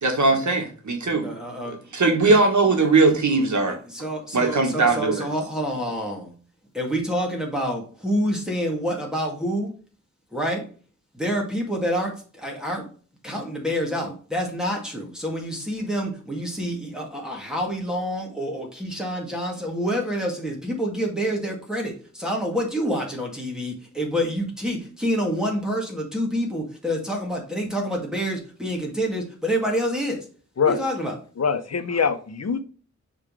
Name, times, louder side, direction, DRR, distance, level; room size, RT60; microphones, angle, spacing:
voice 1, 0.0-1.3 1.9-3.8 4.3-5.3, right 3 dB, 75° right, 3 dB, 1.6 m, -19 dB
voice 2, 1.0-1.8 3.7-6.3 6.7-9.7 10.3-10.6 11.1-12.9 13.2-30.2 30.6-31.1, equal, ahead, -1 dB, 2.1 m, -27 dB
voice 3, 31.4-32.6, left 6 dB, 60° left, 11 dB, 0.8 m, -23 dB
6.6 x 4.0 x 4.8 m, 0.40 s
wide cardioid pair, 75°, 30 cm